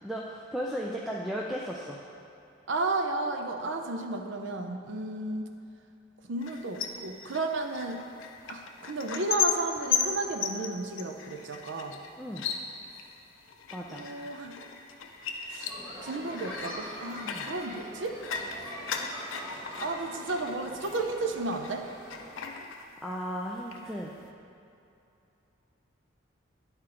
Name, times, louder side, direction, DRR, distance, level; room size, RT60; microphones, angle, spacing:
voice 1, 0.0-2.0 12.2-12.5 13.7-14.1 17.2-17.5 22.3-22.6 23.0-24.1, equal, ahead, -4 dB, 0.3 m, -36 dB
voice 2, 2.7-5.5 6.3-8.0 8.5-12.0 13.9-14.5 15.5-15.7 16.0-18.2 19.8-21.9, right 2 dB, 70° right, 5 dB, 0.6 m, -33 dB
sound 1, 6.4-21.8 22.1-23.3 23.6-24.3, left 7 dB, 75° left, 0.5 m, -36 dB
sound 2, 15.7-22.3, equal, 20° right, 1.1 m, -44 dB
10.5 x 4.4 x 3.8 m, 2.7 s
head